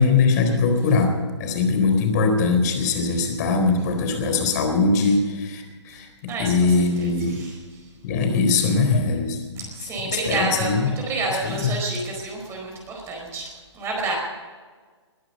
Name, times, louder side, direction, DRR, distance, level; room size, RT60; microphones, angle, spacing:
voice 1, 0.0-7.4 8.0-9.4 10.0-10.9 11.4-11.8, left 4 dB, 35° left, 5 dB, 4.0 m, -21 dB
voice 2, 6.3-7.9 9.6-14.2, right 3 dB, 15° right, -1 dB, 4.7 m, -30 dB
21.5 x 12.0 x 5.5 m, 1.5 s
figure-of-eight pair, 130°, 15 cm